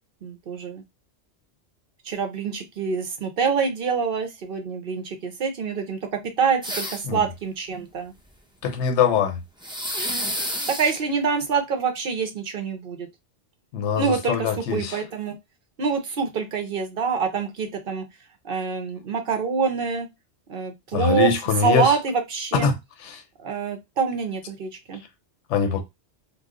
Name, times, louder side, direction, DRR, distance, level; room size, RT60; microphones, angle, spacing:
voice 1, 0.2-0.8 2.0-6.0 6.4-8.1 10.8-13.1 14.0-15.4 15.8-18.0 18.4-20.1 20.5-21.3 21.6-22.7 23.4-25.0, right 5 dB, 55° right, 0.9 m, -26 dB
sound 1, 6.6-7.2 9.6-11.0, equal, 10° right, 0.3 m, -29 dB
voice 2, 8.6-9.4 13.7-15.0 20.9-22.0 22.5-22.7 23.0-23.2 25.5-25.8, left 6 dB, 85° left, 0.9 m, -23 dB
3.0 x 2.0 x 3.6 m
omnidirectional pair, 1.2 m